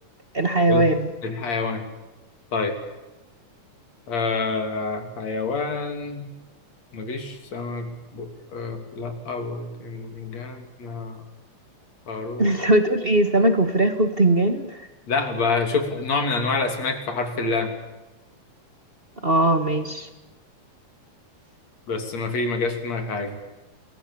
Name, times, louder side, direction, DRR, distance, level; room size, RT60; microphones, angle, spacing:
voice 1, 0.3-1.1 12.4-14.8 19.2-20.1, right 1 dB, 30° right, 7 dB, 1.1 m, -20 dB
voice 2, 1.2-1.8 2.5-2.7 4.1-6.2 6.9-11.2 12.1-12.6 15.1-17.7 21.9-23.4, left 4 dB, 50° left, 6 dB, 4.2 m, -27 dB
28.5 x 22.0 x 7.2 m, 1.1 s
omnidirectional pair, 3.9 m